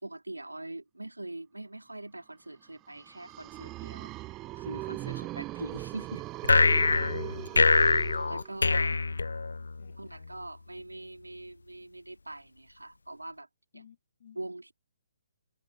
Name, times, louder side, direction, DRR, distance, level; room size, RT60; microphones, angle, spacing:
voice 1, 0.0-6.2 7.0-7.1 8.2-9.0 10.0-13.5 13.7-13.8 14.3-14.7, right 2 dB, 85° right, 3.2 m, -43 dB
sound 1, 2.9-8.8, right 18 dB, 20° right, 0.9 m, -40 dB
sound 2, 6.4-9.9, left 4 dB, 70° left, 0.3 m, -24 dB
voice 2, 6.8-7.8 8.9-9.0 9.6-10.2 13.7-14.4, left 9 dB, 45° left, 7.7 m, -56 dB
figure-of-eight pair, 135°, 0 cm